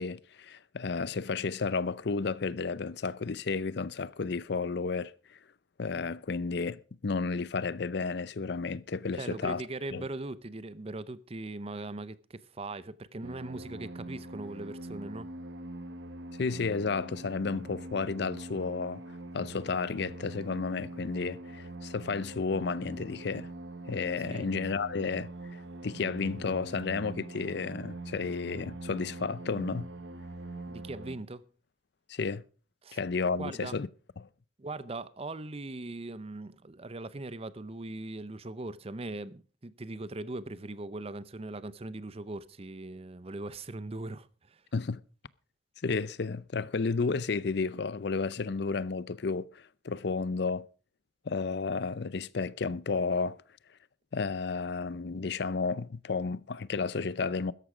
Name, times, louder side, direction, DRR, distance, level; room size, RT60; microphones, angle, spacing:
voice 1, 0.0-5.4 5.8-9.6 9.9-10.0 16.4-19.0 19.3-23.5 23.9-25.3 25.8-29.9 32.1-32.4 32.9-33.9 34.2-34.3 44.7-45.0 45.8-50.7 51.3-53.4 54.1-57.5, left 4 dB, 60° left, 0.5 m, -32 dB
voice 2, 9.2-15.3 24.3-24.5 30.7-31.4 32.8-33.0 33.4-33.8 34.6-44.6, right 2 dB, 30° right, 0.7 m, -40 dB
sound 1, 13.2-31.2, right 2 dB, 75° right, 0.9 m, -43 dB
13.5 x 11.0 x 4.9 m
head